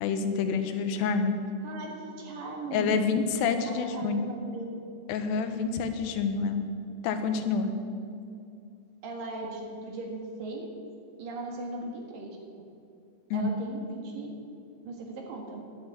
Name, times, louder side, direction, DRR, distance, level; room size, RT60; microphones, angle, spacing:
voice 1, 0.0-1.3 2.7-4.3 5.1-6.7 7.0-7.7 13.3-13.5, left 5 dB, 85° left, 7 dB, 3.1 m, -28 dB
voice 2, 1.6-3.4 3.7-4.8 9.0-10.7 11.2-12.4 13.3-14.3 14.8-15.6, right 2 dB, 60° right, 1 dB, 3.2 m, -38 dB
11.5 x 10.0 x 8.7 m, 2.5 s
omnidirectional pair, 4.8 m